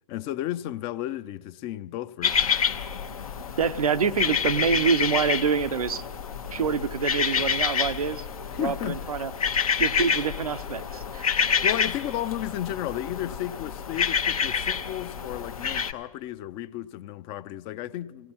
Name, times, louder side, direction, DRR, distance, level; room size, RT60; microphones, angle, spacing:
voice 1, 0.1-2.5 8.5-9.1 11.6-18.3, left 13 dB, 30° left, 0.4 m, -33 dB
sound 1, 2.2-15.9, left 6 dB, 80° left, 1.0 m, -28 dB
voice 2, 3.6-6.0 6.5-8.2 8.6-9.3 9.8-11.3, right 6 dB, 90° right, 0.6 m, -26 dB
29.0 x 17.5 x 2.9 m
hypercardioid pair, 120°, 18 cm